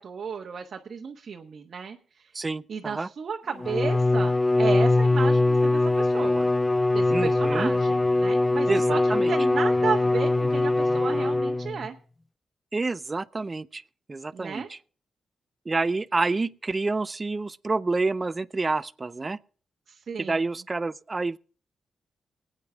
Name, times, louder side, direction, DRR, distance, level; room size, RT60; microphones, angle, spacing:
voice 1, 0.0-2.3 2.7-6.5 6.9-11.9 14.3-14.7 19.9-20.5, right 6 dB, 60° right, 1.1 m, -34 dB
voice 2, 2.3-3.1 7.1-7.7 8.7-9.3 12.7-13.8 14.1-14.8 15.7-19.4 20.2-21.4, right 3 dB, 35° right, 0.5 m, -28 dB
Bowed string instrument, 3.6-11.9, left 2 dB, 20° left, 0.5 m, -22 dB
23.0 x 9.0 x 3.5 m
supercardioid pair, 55°, 0 cm